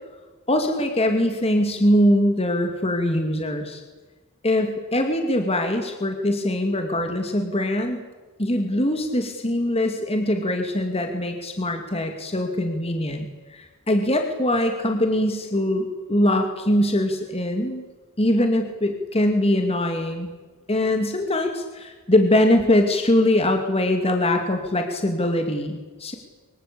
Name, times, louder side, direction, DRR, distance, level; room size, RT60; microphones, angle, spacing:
voice 1, 0.5-3.8 4.4-8.0 8.4-17.8 18.2-20.3 20.7-26.1, left 1 dB, 30° left, 4 dB, 2.5 m, -22 dB
24.5 x 23.5 x 8.6 m, 1.3 s
head